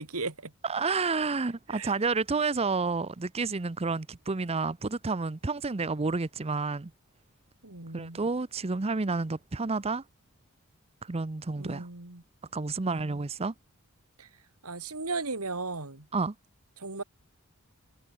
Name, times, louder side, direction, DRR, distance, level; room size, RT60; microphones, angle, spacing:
voice 1, 0.0-0.5 1.7-1.9 7.6-8.2 11.6-12.2 12.8-13.2 14.2-14.3 14.6-16.1 16.8-17.0, right 3 dB, 75° right, 2.9 m, -36 dB
voice 2, 0.6-6.9 7.9-10.0 11.0-11.9 12.5-13.5 16.1-16.3, right 4 dB, 25° right, 0.7 m, -30 dB
head